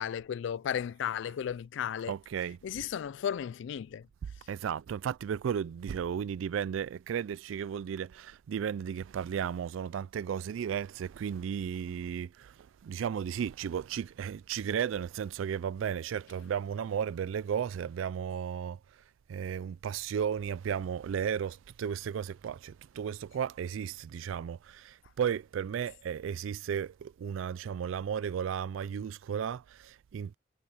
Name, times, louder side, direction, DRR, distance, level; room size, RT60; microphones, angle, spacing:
voice 1, 0.0-2.1 2.6-4.1, left 8 dB, 65° left, 0.3 m, -34 dB
voice 2, 2.1-2.6 4.5-19.0 19.3-30.3, right 8 dB, 85° right, 0.3 m, -34 dB
head